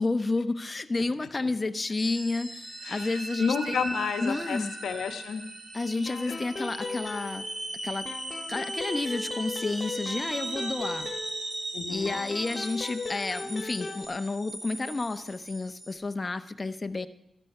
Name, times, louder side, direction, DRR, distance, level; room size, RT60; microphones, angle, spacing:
voice 1, 0.0-3.8 4.2-4.7 5.7-7.5 7.8-8.1 8.5-11.1 11.9-17.1, left 3 dB, 35° left, 9 dB, 0.8 m, -30 dB
sound 1, 2.0-15.9, right 2 dB, 40° right, 3.2 m, -38 dB
voice 2, 2.8-5.4 6.2-6.4 11.7-12.2, left 6 dB, 90° left, 8 dB, 1.0 m, -32 dB
sound 2, 6.1-7.7 8.1-11.7 12.1-14.1, left 4 dB, 50° left, 1.6 m, -38 dB
13.5 x 11.5 x 5.5 m, 0.88 s
cardioid pair, 65°, 0 cm